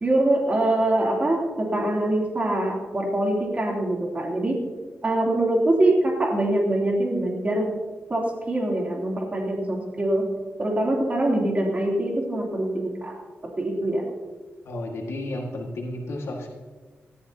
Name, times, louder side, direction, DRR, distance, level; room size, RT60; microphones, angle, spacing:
voice 1, 0.0-4.6 5.0-7.7 8.1-10.2 10.6-13.1 13.6-14.0, right 1 dB, 35° right, -2 dB, 3.0 m, -24 dB
voice 2, 14.6-16.5, left 1 dB, 90° left, 0 dB, 1.8 m, -32 dB
19.0 x 13.5 x 2.8 m, 1.4 s
wide cardioid pair, 130°, 4 cm